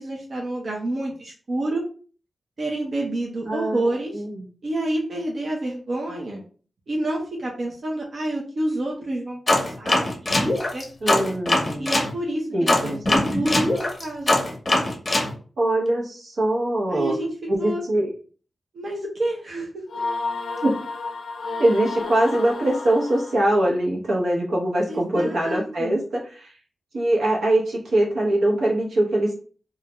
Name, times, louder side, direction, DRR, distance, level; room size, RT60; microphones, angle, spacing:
voice 1, 0.0-1.8 2.6-4.2 4.6-6.4 6.9-11.3 11.8-14.4 16.9-17.3 17.6-17.8 18.7-19.8 24.9-26.0, right 1 dB, 60° right, -2 dB, 0.6 m, -29 dB
voice 2, 3.4-3.8 4.1-4.4 11.0-11.9 12.5-13.2 15.6-17.2 17.5-18.1 20.6-20.8 21.6-26.5 26.9-29.3, right 1 dB, 90° right, -3 dB, 0.9 m, -22 dB
sound 1, 9.5-12.1 12.7-15.3, left 1 dB, 30° left, 0.7 m, -21 dB
sound 2, 19.9-23.7, left 3 dB, 85° left, 0.4 m, -31 dB
2.4 x 2.1 x 2.9 m, 0.39 s
wide cardioid pair, 95°, 0 cm